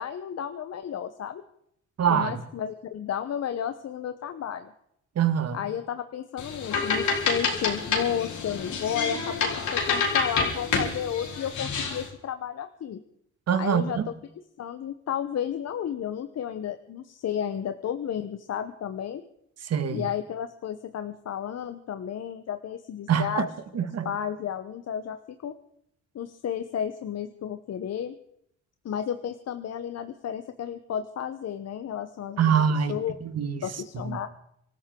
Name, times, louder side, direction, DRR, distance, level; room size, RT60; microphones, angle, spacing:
voice 1, 0.0-1.4 2.1-4.7 5.5-13.0 13.6-14.0 14.6-19.2 19.9-23.5 23.8-25.5 26.1-28.1 28.8-32.4 32.9-33.1 33.6-34.3, left 9 dB, 55° left, 0.9 m, -32 dB
voice 2, 2.0-2.4 5.2-5.6 13.5-14.0 19.6-20.1 23.1-23.4 23.7-24.1 32.4-33.7 34.0-34.2, right 8 dB, 55° right, 1.8 m, -25 dB
sound 1, 6.4-12.1, left 5 dB, 70° left, 3.8 m, -28 dB
26.0 x 13.5 x 3.8 m
cardioid pair, 90°, 30 cm